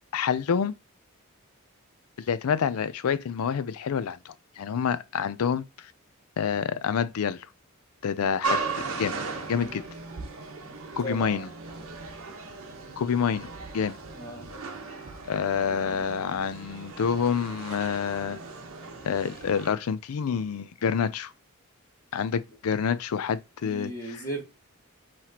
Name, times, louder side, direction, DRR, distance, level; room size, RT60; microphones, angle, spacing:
voice 1, 0.1-0.7 2.2-5.6 6.4-7.5 8.0-9.1 9.5-9.8 11.0-11.5 13.0-13.5 13.7-13.9 15.3-18.4 19.0-21.3 22.1-24.3, left 7 dB, 85° left, 0.4 m, -28 dB
sound 1, 8.4-19.7, right 4 dB, 70° right, 1.0 m, -37 dB
voice 2, 11.0-11.4 11.8-12.0 14.2-14.5 15.6-16.3 23.6-24.4, right 1 dB, 15° left, 1.7 m, -37 dB
5.7 x 3.2 x 2.8 m
head